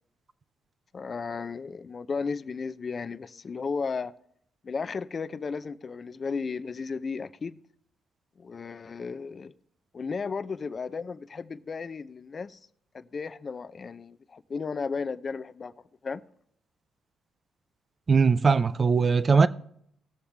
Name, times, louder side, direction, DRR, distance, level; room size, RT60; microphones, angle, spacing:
voice 1, 0.9-4.1 4.6-7.6 8.4-9.5 9.9-12.6 12.9-15.7 16.0-16.2, left 5 dB, 40° left, 0.6 m, -34 dB
voice 2, 18.1-19.5, right 5 dB, 35° right, 0.6 m, -20 dB
19.5 x 7.1 x 3.4 m
cardioid pair, 90°, 0 cm